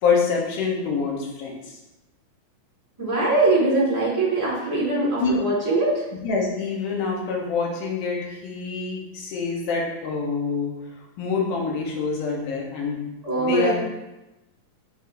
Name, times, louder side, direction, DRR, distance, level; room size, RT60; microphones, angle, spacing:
voice 1, 0.0-1.8 5.2-5.3 6.2-10.7 11.2-13.0 13.4-13.7, left 5 dB, 75° left, -2 dB, 2.6 m, -26 dB
voice 2, 3.0-6.0 13.2-13.7, right 2 dB, 15° right, -6 dB, 1.4 m, -22 dB
7.2 x 5.1 x 2.7 m, 0.98 s
omnidirectional pair, 3.7 m